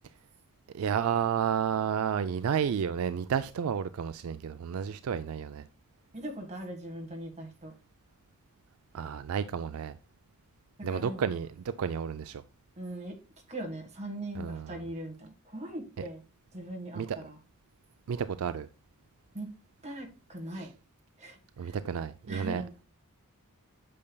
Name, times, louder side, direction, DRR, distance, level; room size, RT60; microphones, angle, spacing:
voice 1, 0.7-5.6 8.9-10.0 10.8-12.4 14.4-14.8 16.0-16.1 16.9-17.2 18.1-18.7 20.6-20.7 21.6-22.6, right 7 dB, 70° right, 0.4 m, -31 dB
voice 2, 6.1-7.7 10.8-11.3 12.8-13.2 13.5-16.2 16.5-17.4 19.3-19.5 19.8-20.7 21.2-21.7 22.3-22.7, right 1 dB, 30° right, 1.6 m, -40 dB
8.5 x 6.6 x 2.2 m
head